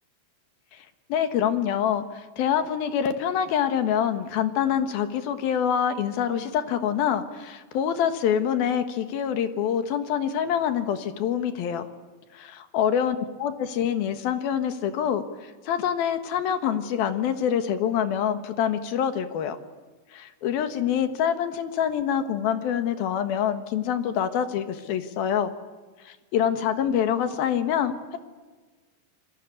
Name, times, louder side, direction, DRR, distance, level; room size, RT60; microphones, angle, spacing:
voice 1, 1.1-11.8 12.3-19.6 20.1-25.5 26.0-28.2, left 9 dB, 65° left, 9 dB, 3.1 m, -26 dB
29.0 x 22.0 x 8.3 m, 1.3 s
omnidirectional pair, 4.9 m